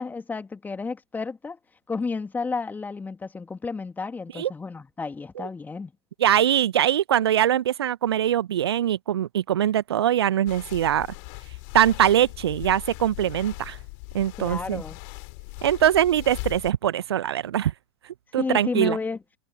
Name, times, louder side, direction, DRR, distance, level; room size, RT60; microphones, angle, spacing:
voice 1, 0.0-1.6 1.9-5.9 14.4-15.0 18.4-19.2, left 4 dB, 10° left, 2.5 m, -31 dB
voice 2, 6.2-11.1 11.7-13.8 14.1-14.8 15.6-17.7 18.3-19.0, right 11 dB, 65° right, 1.2 m, -22 dB
sound 1, 10.5-16.7, left 40 dB or more, 45° left, 3.0 m, -39 dB
figure-of-eight pair, 95°, 15 cm